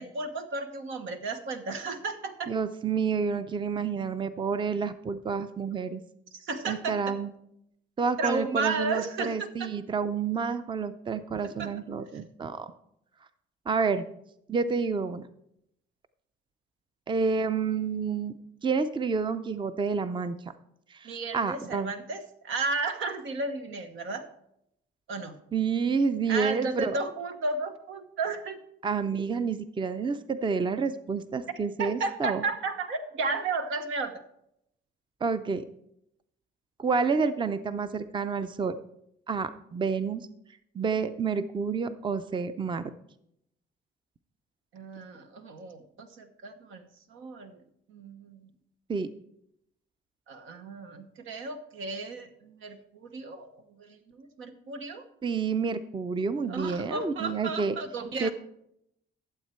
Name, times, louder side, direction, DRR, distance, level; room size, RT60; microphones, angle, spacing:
voice 1, 0.0-2.5 6.4-7.1 8.2-9.7 11.4-11.7 21.0-24.2 25.1-25.3 26.3-28.6 31.8-34.2 44.7-47.5 47.9-48.5 50.3-55.0 56.5-58.3, right 3 dB, 80° right, 7 dB, 1.1 m, -34 dB
voice 2, 2.5-6.0 6.7-7.3 8.0-12.7 13.7-14.0 14.5-15.2 17.1-18.3 18.6-20.4 20.9-21.9 25.5-27.0 28.8-32.4 35.2-35.6 36.8-38.8 39.3-40.3 40.7-42.9 48.9-49.1 55.2-57.8 58.2-58.3, right 5 dB, 25° right, 12 dB, 0.5 m, -29 dB
12.0 x 7.4 x 4.5 m, 0.77 s
cardioid pair, 90°, 20 cm